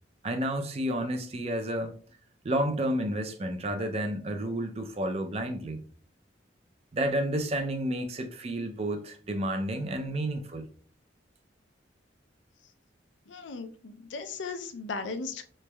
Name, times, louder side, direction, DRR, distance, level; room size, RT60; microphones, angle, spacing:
voice 1, 0.2-2.0 2.4-5.8 6.9-10.7, right 1 dB, 35° right, 0.4 m, -31 dB
voice 2, 13.3-15.5, left 4 dB, 80° left, 0.5 m, -37 dB
3.9 x 3.2 x 2.2 m
head